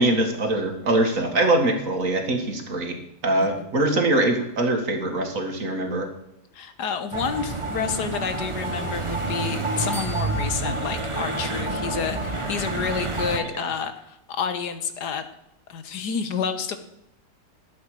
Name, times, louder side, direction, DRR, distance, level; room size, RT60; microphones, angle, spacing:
voice 1, 0.0-3.0 3.2-6.1 13.3-13.6, right 1 dB, 55° right, 4 dB, 2.2 m, -23 dB
voice 2, 3.4-3.7 6.5-15.2 15.7-16.8, left 6 dB, 85° left, 9 dB, 1.7 m, -29 dB
sound 1, 7.1-13.4, right 2 dB, 20° right, 1.0 m, -28 dB
sound 2, 9.9-12.2, left 1 dB, 40° left, 6.2 m, -43 dB
12.5 x 8.5 x 6.5 m, 0.80 s
omnidirectional pair, 1.7 m